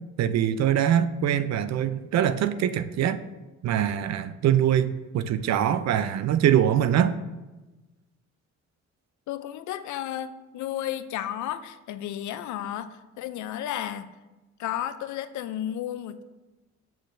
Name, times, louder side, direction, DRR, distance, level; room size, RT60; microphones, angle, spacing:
voice 1, 0.2-3.2 3.6-7.1, right 10 dB, 60° right, 12 dB, 0.4 m, -23 dB
voice 2, 9.3-14.1 14.6-16.2, left 11 dB, 70° left, 12 dB, 0.5 m, -33 dB
6.4 x 6.2 x 2.6 m, 1.1 s
cardioid pair, 90°, 30 cm